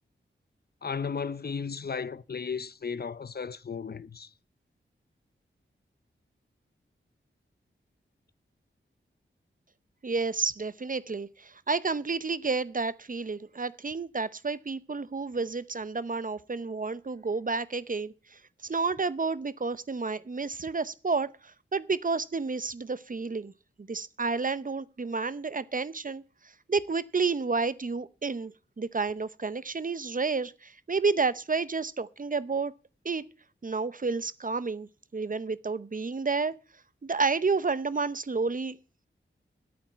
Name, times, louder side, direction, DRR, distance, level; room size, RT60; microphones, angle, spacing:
voice 1, 0.8-4.3, left 5 dB, 50° left, 0.6 m, -35 dB
voice 2, 10.0-23.5 23.8-26.2 26.7-32.7 33.0-33.2 33.6-36.5 37.0-38.8, right 4 dB, 40° right, 0.7 m, -30 dB
8.6 x 8.5 x 9.1 m
cardioid pair, 55°, 21 cm